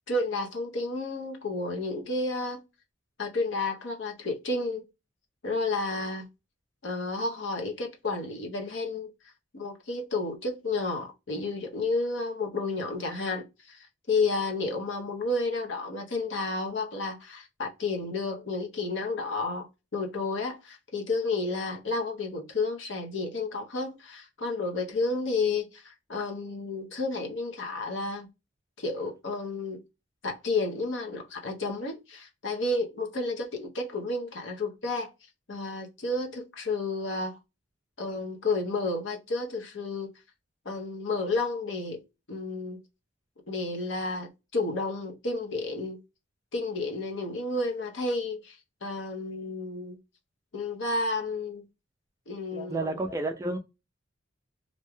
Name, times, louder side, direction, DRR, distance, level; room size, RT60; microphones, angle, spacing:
voice 1, 0.1-2.6 3.2-4.9 5.4-6.3 6.8-9.1 9.5-19.7 19.9-28.3 28.8-29.8 30.2-35.1 35.5-37.4 38.0-40.1 40.6-42.0 42.3-42.8 43.5-46.0 46.5-50.0 50.5-51.6 52.3-53.0, left 3 dB, 65° left, 0.7 m, -31 dB
voice 2, 52.7-53.6, right 2 dB, 15° right, 0.3 m, -30 dB
2.6 x 2.2 x 3.0 m
head